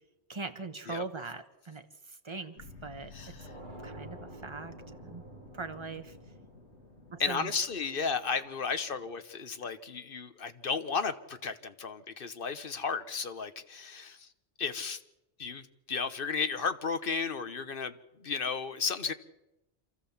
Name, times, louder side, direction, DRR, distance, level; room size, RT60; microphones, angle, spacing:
voice 1, 0.3-3.3 3.8-4.7 5.0-5.2 5.5-6.2 7.1-7.5, right 4 dB, 25° right, 8 dB, 1.2 m, -41 dB
sound 1, 2.6-9.0, left 4 dB, 80° left, 2.1 m, -53 dB
sound 2, 3.4-8.1, right 2 dB, 45° right, 2.1 m, -50 dB
voice 2, 7.2-14.2 14.6-15.0 15.4-15.6 15.9-17.9 18.2-19.1, left 5 dB, 55° left, 10 dB, 1.2 m, -33 dB
27.5 x 13.5 x 7.2 m, 0.93 s
omnidirectional pair, 1.1 m